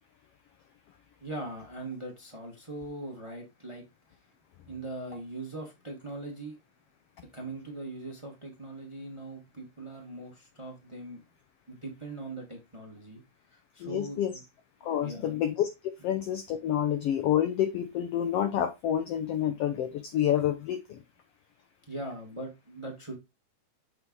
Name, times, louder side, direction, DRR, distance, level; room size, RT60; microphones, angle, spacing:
voice 1, 1.2-3.8 4.7-6.6 7.3-11.2 11.7-13.2 13.5-14.4 15.0-15.4 21.9-23.2, right 2 dB, 15° right, 0.9 m, -40 dB
voice 2, 13.8-14.3 14.8-15.7 16.0-21.0, left 10 dB, 85° left, 1.3 m, -28 dB
7.3 x 4.4 x 3.9 m
omnidirectional pair, 3.6 m